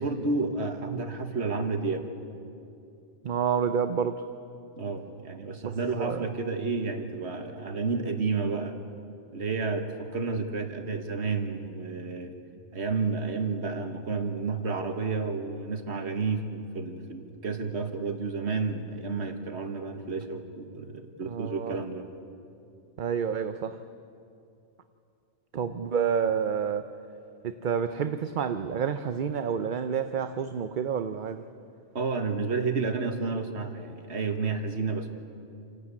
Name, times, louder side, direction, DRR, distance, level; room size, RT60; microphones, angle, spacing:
voice 1, 0.0-2.1 4.8-8.8 9.3-12.3 12.7-22.1 32.0-35.1, right 4 dB, 65° right, 1.7 m, -31 dB
voice 2, 3.2-4.3 5.6-6.3 21.3-21.8 23.0-23.8 25.5-26.9 27.4-31.5, right 7 dB, 50° right, 0.7 m, -29 dB
28.0 x 12.0 x 8.5 m
omnidirectional pair, 1.2 m